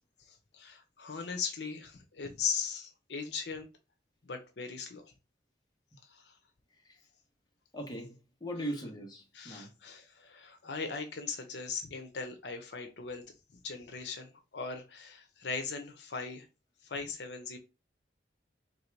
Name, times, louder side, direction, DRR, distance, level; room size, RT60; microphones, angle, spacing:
voice 1, 0.2-3.7 4.2-5.1 6.1-6.4 9.3-13.2 13.5-16.5 16.8-17.6, left 5 dB, 75° left, 0.7 m, -39 dB
voice 2, 7.7-9.7, right 1 dB, 25° left, 1.1 m, -40 dB
3.4 x 2.7 x 4.5 m
head